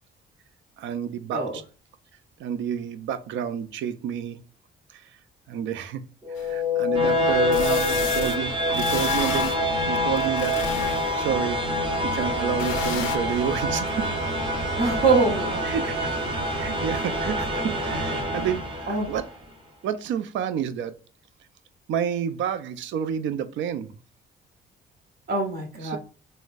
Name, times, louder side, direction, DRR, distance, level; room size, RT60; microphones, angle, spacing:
voice 1, 0.8-1.6 2.4-4.4 4.9-5.0 5.5-6.0 6.4-9.5 9.9-10.6 11.1-11.6 12.0-14.1 15.6-16.1 16.5-19.3 19.8-20.9 21.9-23.9 25.8-26.0, right 8 dB, 75° right, 0.4 m, -29 dB
sound 1, 6.2-19.2, left 1 dB, 25° right, 0.9 m, -26 dB
sound 2, 6.4-6.5 7.5-8.4 8.7-9.6 10.2-11.3 12.6-13.2, left 9 dB, 85° left, 0.4 m, -32 dB
voice 2, 14.8-15.6 16.0-16.1 18.9-19.1 25.3-26.0, right 4 dB, 55° right, 1.0 m, -24 dB
3.6 x 2.1 x 2.5 m
cardioid pair, 90°, 20 cm